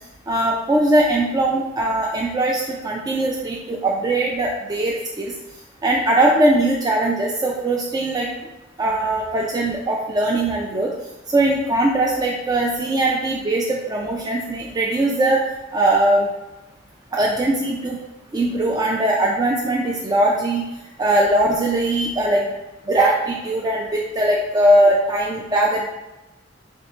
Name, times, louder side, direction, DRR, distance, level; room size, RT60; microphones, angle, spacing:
voice 1, 0.3-5.3 5.8-8.3 8.8-10.9 11.3-15.4 15.7-16.3 17.1-18.0 18.3-20.6 21.0-22.5 22.9-25.9, right 1 dB, 20° right, -2 dB, 0.3 m, -20 dB
4.2 x 3.1 x 2.9 m, 1.0 s
head